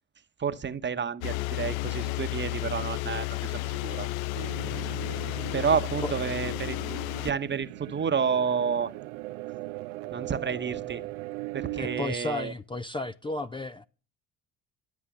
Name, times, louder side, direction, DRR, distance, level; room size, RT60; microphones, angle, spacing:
voice 1, 0.4-4.1 5.5-8.9 10.1-11.0 11.5-12.5, right 6 dB, 30° right, 1.1 m, -30 dB
sound 1, 1.2-7.3, left 19 dB, 70° left, 0.5 m, -32 dB
sound 2, 4.3-12.1, right 20 dB, 80° right, 0.6 m, -39 dB
voice 2, 11.8-13.8, left 2 dB, 15° left, 0.5 m, -33 dB
13.0 x 8.1 x 7.4 m
hypercardioid pair, 65°, 37 cm